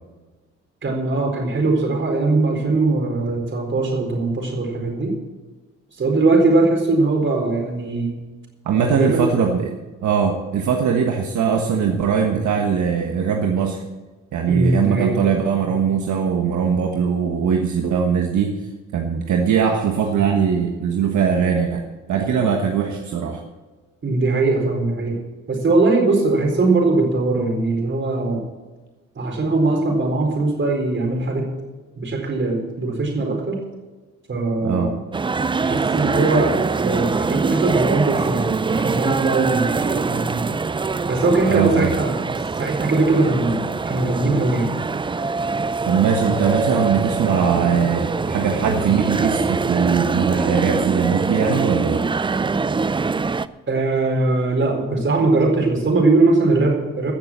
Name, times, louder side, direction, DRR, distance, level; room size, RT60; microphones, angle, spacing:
voice 1, 0.8-5.2 6.0-8.2 8.9-9.2 14.5-15.2 24.0-25.2 25.5-28.4 29.2-31.5 32.0-33.6 34.3-35.0 35.6-40.5 41.1-42.2 42.6-44.7 53.7-57.1, right 3 dB, 40° right, 1 dB, 4.4 m, -20 dB
voice 2, 8.6-9.7 10.0-13.8 14.3-18.6 18.9-23.4 34.6-34.9 41.5-41.9 45.8-52.0, right 6 dB, 70° right, 3 dB, 1.4 m, -20 dB
sound 1, 35.1-53.5, right 4 dB, 15° right, 0.4 m, -23 dB
15.0 x 7.0 x 7.5 m, 1.2 s
cardioid pair, 90°, 30 cm